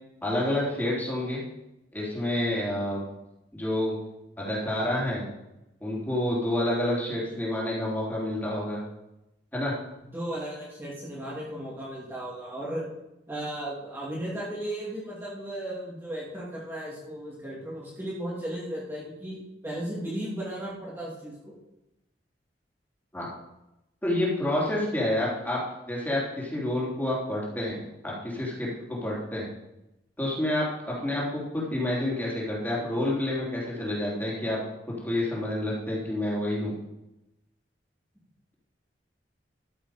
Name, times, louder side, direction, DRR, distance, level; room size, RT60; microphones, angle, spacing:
voice 1, 0.2-1.4 1.9-3.0 3.5-4.0 4.4-5.2 5.8-8.8 9.5-9.8 23.1-23.3 24.0-29.5 30.2-34.6 34.9-36.7, left 1 dB, 10° left, -5 dB, 3.5 m, -29 dB
voice 2, 10.1-12.8 13.3-21.5 31.0-31.2, right 1 dB, 15° right, -7 dB, 2.6 m, -35 dB
13.5 x 7.4 x 5.1 m, 0.91 s
head